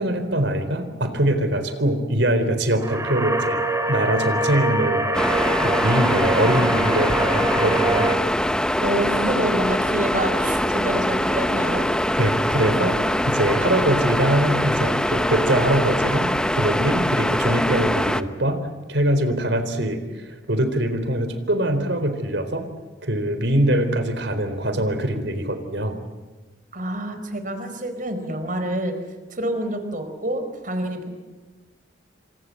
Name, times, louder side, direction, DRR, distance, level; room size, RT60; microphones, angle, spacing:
voice 1, 0.0-3.6 3.9-8.2 12.2-18.6 18.9-22.6 23.0-26.0, right 1 dB, 70° right, 9 dB, 4.1 m, -23 dB
sound 1, 2.8-8.1, right 1 dB, 15° right, 2.4 m, -24 dB
sound 2, 5.1-18.2, left 1 dB, 5° left, 0.9 m, -23 dB
voice 2, 8.8-11.9 26.7-29.0 29.3-31.1, right 1 dB, 45° right, 8 dB, 4.6 m, -27 dB
28.5 x 26.0 x 7.8 m, 1.3 s
head